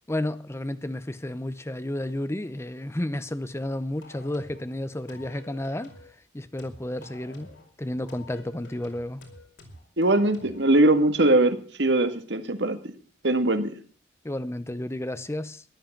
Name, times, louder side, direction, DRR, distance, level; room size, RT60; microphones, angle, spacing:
voice 1, 0.1-5.9 6.3-7.5 7.8-9.2 14.2-15.6, left 1 dB, 15° left, 0.7 m, -32 dB
sound 1, 4.0-4.7 5.1-6.1 6.6-7.7 8.1-10.7, left 2 dB, 85° left, 5.1 m, -48 dB
voice 2, 10.0-12.9 13.2-13.7, right 2 dB, 75° right, 1.8 m, -21 dB
14.5 x 11.5 x 7.2 m
head